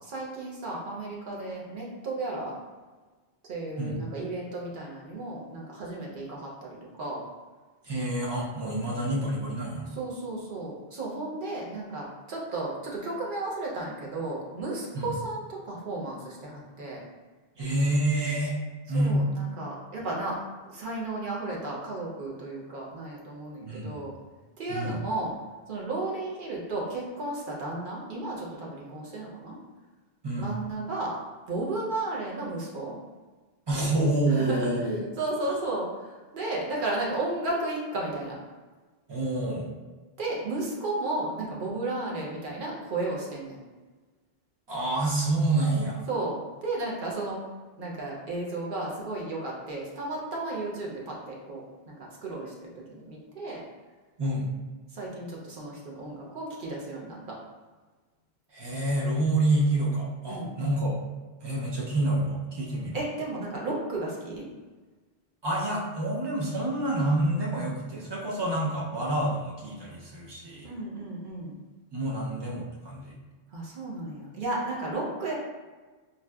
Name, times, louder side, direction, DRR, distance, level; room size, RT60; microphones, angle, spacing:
voice 1, 0.0-2.5 3.5-7.2 9.9-17.0 18.9-20.4 20.7-24.1 24.6-25.3 25.7-29.6 30.4-31.1 31.5-32.9 34.3-34.9 35.2-38.4 40.2-43.6 46.1-46.4 46.6-47.4 47.8-53.6 54.9-57.3 60.3-60.5 62.9-64.4 70.6-71.6 73.5-75.3, right 2 dB, 55° right, -3 dB, 0.8 m, -34 dB
voice 2, 7.8-9.9 14.9-15.1 17.6-18.6 18.9-19.2 23.6-24.0 24.7-25.0 30.2-30.5 33.7-35.0 39.1-39.7 44.7-46.0 54.2-54.4 58.5-61.0 61.4-63.0 65.4-70.7 71.9-73.1, right 1 dB, 35° right, -4 dB, 0.5 m, -28 dB
3.9 x 2.2 x 2.3 m, 1.3 s
omnidirectional pair, 1.0 m